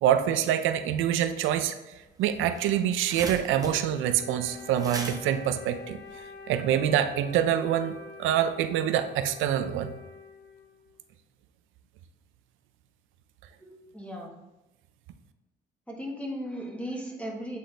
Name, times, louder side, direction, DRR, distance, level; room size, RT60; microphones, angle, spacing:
voice 1, 0.0-1.7 2.2-6.0 6.5-9.9, right 10 dB, 90° right, 10 dB, 0.5 m, -26 dB
sound 1, 2.0-2.1 2.3-6.6, right 2 dB, 20° right, 0.9 m, -40 dB
Wind instrument woodwind instrument, 3.4-11.0, left 5 dB, 55° left, 0.9 m, -47 dB
voice 2, 13.6-14.3 15.9-17.6, equal, 5° left, -1 dB, 1.4 m, -36 dB
8.2 x 3.9 x 3.3 m, 0.98 s
cardioid pair, 90°, 20 cm